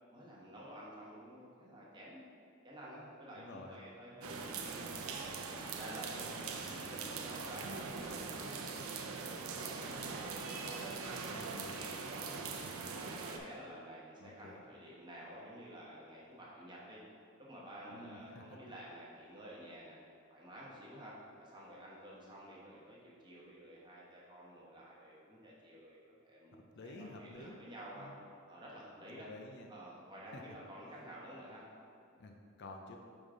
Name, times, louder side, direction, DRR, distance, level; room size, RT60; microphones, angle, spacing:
voice 1, 0.1-2.2 2.6-5.2 5.6-10.4 10.7-12.6 12.9-17.0 17.4-20.0 20.3-28.1 28.5-29.3 29.7-31.6, equal, 20° right, -5 dB, 1.1 m, -51 dB
voice 2, 3.4-3.8 6.1-6.6 11.3-11.8 14.2-14.6 17.9-18.6 26.8-27.6 28.0-28.2 29.1-29.7 30.3-30.4 32.2-33.0, left 2 dB, 55° left, 3 dB, 0.5 m, -51 dB
sound 1, 4.2-13.4, right 4 dB, 75° right, 0.5 m, -42 dB
5.4 x 4.9 x 3.8 m, 2.4 s
head